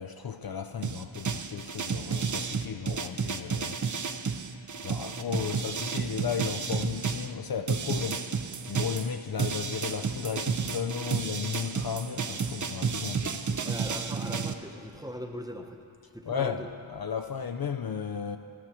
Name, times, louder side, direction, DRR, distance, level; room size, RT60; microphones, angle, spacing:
voice 1, 0.0-3.8 4.8-8.3 8.7-13.7 16.3-18.4, left 7 dB, 50° left, 7 dB, 0.5 m, -34 dB
sound 1, 0.8-7.3 7.7-14.5, right 5 dB, 40° right, 0.5 m, -31 dB
voice 2, 13.6-15.8 16.1-16.7, equal, 10° right, 3 dB, 0.8 m, -40 dB
13.5 x 4.8 x 7.1 m, 2.5 s
wide cardioid pair, 40°, 47 cm